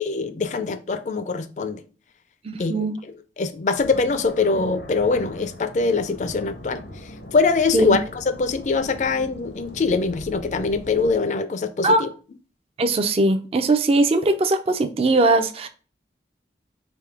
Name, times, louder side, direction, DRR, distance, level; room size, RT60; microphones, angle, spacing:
voice 1, 0.0-1.8 2.6-6.8 7.3-12.1, left 4 dB, 40° left, 0.4 m, -23 dB
voice 2, 2.4-2.9 7.7-8.0 11.8-12.0 12.8-15.7, right 2 dB, 35° right, 0.4 m, -20 dB
sound 1, 3.7-11.2, left 1 dB, 75° left, 0.7 m, -40 dB
3.5 x 2.7 x 4.6 m
head